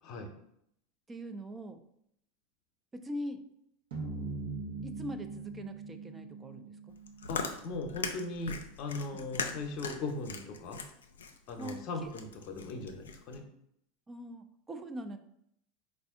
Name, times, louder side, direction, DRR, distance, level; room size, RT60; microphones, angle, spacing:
voice 1, 1.1-1.8 2.9-3.4 4.8-6.9 9.1-9.3 11.6-12.1 14.1-15.2, equal, 20° right, 8 dB, 0.5 m, -42 dB
sound 1, 3.9-8.3, right 3 dB, 75° right, 0.9 m, -42 dB
Chewing mastication, 6.9-13.4, left 6 dB, 85° left, 0.4 m, -41 dB
voice 2, 7.3-10.9 11.5-13.4, left 2 dB, 50° left, 4 dB, 0.7 m, -39 dB
4.1 x 2.5 x 3.6 m, 0.73 s
hypercardioid pair, 90°, 0 cm